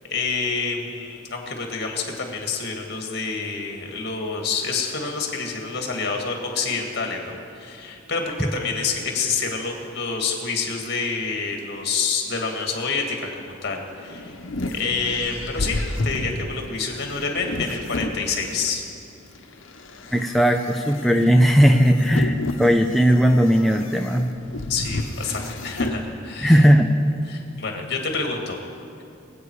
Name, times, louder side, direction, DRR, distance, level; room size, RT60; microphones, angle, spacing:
voice 1, 0.1-14.4 14.7-18.8 24.7-26.7 27.3-28.6, left 4 dB, 55° left, 2 dB, 2.1 m, -28 dB
sound 1, 13.8-18.8 19.4-26.0, left 2 dB, 75° left, 1.0 m, -31 dB
voice 2, 20.1-24.3 26.4-26.9, equal, ahead, 3 dB, 0.5 m, -17 dB
23.5 x 8.5 x 4.8 m, 2.6 s
head